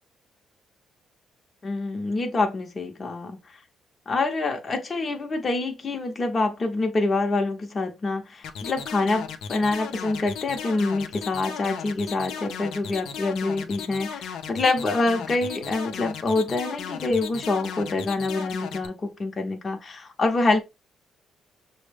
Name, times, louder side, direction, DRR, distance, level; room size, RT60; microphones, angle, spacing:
voice 1, 1.6-3.4 4.1-20.6, left 3 dB, 35° left, 0.8 m, -26 dB
sound 1, 8.4-18.9, left 7 dB, 85° left, 0.6 m, -35 dB
6.2 x 2.1 x 3.3 m
cardioid pair, 90°, 0 cm